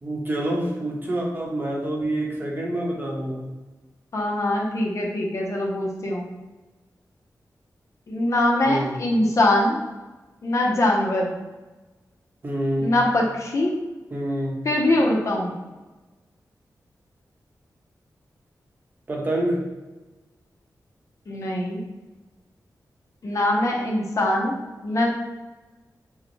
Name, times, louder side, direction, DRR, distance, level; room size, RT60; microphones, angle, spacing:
voice 1, 0.0-3.5 8.6-9.0 12.4-12.9 14.1-14.6 19.1-19.7, right 1 dB, 30° right, -2 dB, 0.9 m, -27 dB
voice 2, 4.1-6.3 8.1-9.8 10.4-11.3 12.8-13.8 14.6-15.5 21.3-21.8 23.2-24.5 24.8-25.1, left 1 dB, 50° left, -1 dB, 0.8 m, -22 dB
6.4 x 2.2 x 3.2 m, 1.2 s
wide cardioid pair, 160°, 7 cm